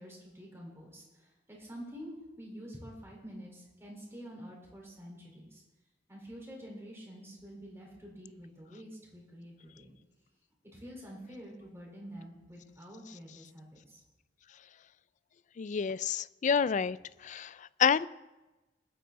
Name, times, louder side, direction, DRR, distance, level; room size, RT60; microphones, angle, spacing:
voice 1, 0.0-5.6 6.1-9.9 10.7-14.0, equal, 15° right, -3 dB, 4.5 m, -48 dB
voice 2, 15.6-17.0 17.2-18.1, left 7 dB, 40° left, 18 dB, 0.3 m, -28 dB
20.5 x 9.3 x 4.1 m, 1.1 s
head